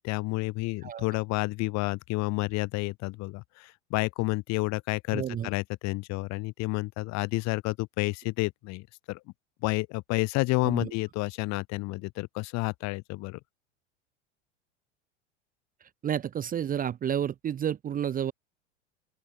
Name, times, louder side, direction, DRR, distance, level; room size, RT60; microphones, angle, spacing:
voice 1, 0.0-9.2 9.6-13.4, left 23 dB, 45° left, 3.3 m, -30 dB
voice 2, 5.1-5.5 10.6-10.8 16.0-18.3, right 9 dB, 20° right, 1.0 m, -30 dB
open air
figure-of-eight pair, 85°, 37 cm